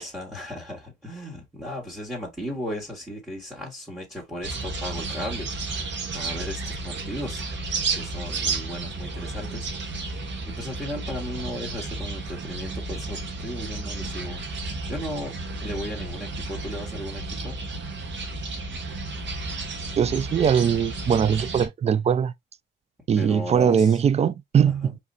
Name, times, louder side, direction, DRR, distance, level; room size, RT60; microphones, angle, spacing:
voice 1, 0.0-7.6 7.9-10.2 10.6-15.3 15.6-17.6 23.2-24.0 24.8-24.9, equal, 5° right, 2.1 m, -36 dB
sound 1, 4.4-21.7, right 3 dB, 65° right, 1.5 m, -32 dB
voice 2, 20.0-22.3 23.1-25.0, right 7 dB, 35° right, 0.4 m, -21 dB
4.8 x 3.4 x 2.8 m
cardioid pair, 90°, 20 cm